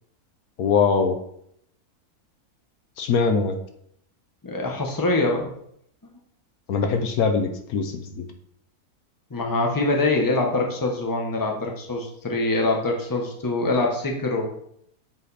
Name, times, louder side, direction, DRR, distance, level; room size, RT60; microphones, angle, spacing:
voice 1, 0.6-1.2 3.0-3.6 6.7-8.3, left 5 dB, 75° left, 6 dB, 1.3 m, -22 dB
voice 2, 4.4-5.5 6.0-6.1 9.3-14.6, left 2 dB, 15° left, 1 dB, 1.0 m, -24 dB
7.5 x 5.0 x 4.2 m, 0.69 s
omnidirectional pair, 1.6 m